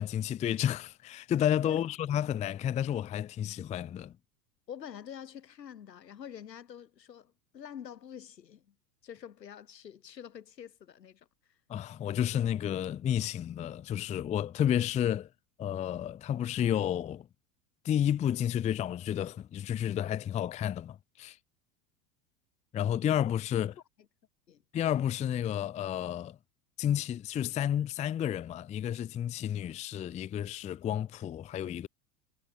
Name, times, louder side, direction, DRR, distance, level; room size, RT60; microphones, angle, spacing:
voice 1, 0.0-4.1 11.7-15.3 15.6-17.3 17.8-21.4 22.7-23.7 24.7-26.4 26.8-31.9, left 10 dB, 15° left, 0.5 m, -31 dB
voice 2, 4.7-8.7 9.0-11.3 24.5-24.6, left 9 dB, 75° left, 2.7 m, -46 dB
figure-of-eight pair, 85°, 50 cm